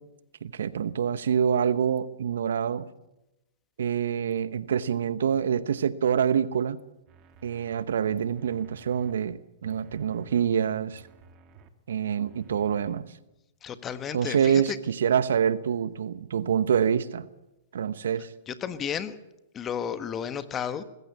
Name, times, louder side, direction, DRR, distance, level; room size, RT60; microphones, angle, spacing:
voice 1, 0.4-2.9 3.8-6.8 7.4-11.0 11.9-13.1 14.1-17.3 17.7-18.3, right 8 dB, 75° right, 1.0 m, -26 dB
sound 1, 6.5-6.6 7.1-7.8 8.3-9.1 9.6-10.4 10.9-11.7 12.2-13.0, right 4 dB, 35° right, 2.1 m, -55 dB
voice 2, 13.6-14.8 18.5-19.2 19.5-20.8, left 8 dB, 25° left, 1.4 m, -32 dB
21.0 x 15.0 x 8.5 m
hypercardioid pair, 120°, 0 cm